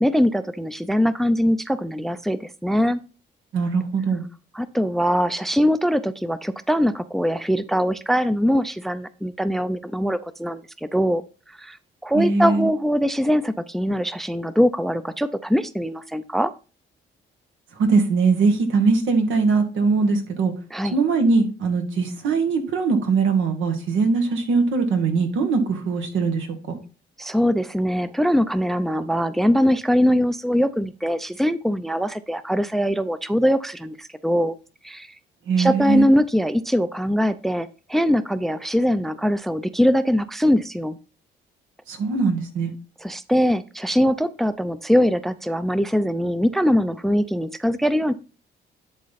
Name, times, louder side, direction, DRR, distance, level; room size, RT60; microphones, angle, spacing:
voice 1, 0.0-3.0 4.5-11.2 11.6-11.8 12.0-16.5 20.7-20.9 27.2-34.6 34.8-35.1 35.6-41.0 43.0-48.1, equal, ahead, 14 dB, 0.5 m, -22 dB
voice 2, 3.5-4.2 12.1-12.7 17.8-20.5 20.9-26.8 35.5-36.1 41.9-42.7, right 4 dB, 80° right, 6 dB, 1.7 m, -21 dB
10.5 x 3.9 x 4.1 m, 0.34 s
cardioid pair, 90°, 20 cm